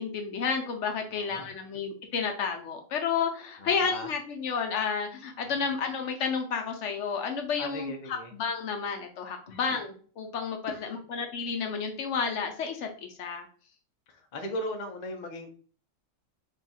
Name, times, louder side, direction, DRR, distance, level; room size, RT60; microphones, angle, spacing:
voice 1, 0.0-13.5, left 5 dB, 70° left, 4 dB, 0.9 m, -31 dB
voice 2, 1.1-1.5 3.6-4.1 5.6-5.7 7.6-8.3 9.5-9.8 10.7-11.0 14.1-15.5, left 1 dB, 50° left, 4 dB, 0.6 m, -38 dB
3.5 x 2.3 x 4.0 m, 0.42 s
omnidirectional pair, 1.4 m